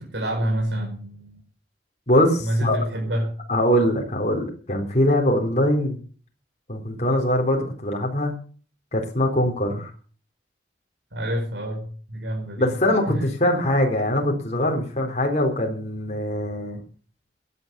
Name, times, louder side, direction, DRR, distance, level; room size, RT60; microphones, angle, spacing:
voice 1, 0.0-1.4 2.4-3.3 11.1-12.7, equal, 90° right, 1 dB, 5.2 m, -27 dB
voice 2, 2.1-2.8 3.5-6.0 6.7-8.3 8.9-9.9 12.6-16.8, left 1 dB, 40° left, 1 dB, 3.8 m, -22 dB
16.5 x 10.5 x 6.8 m, 0.41 s
head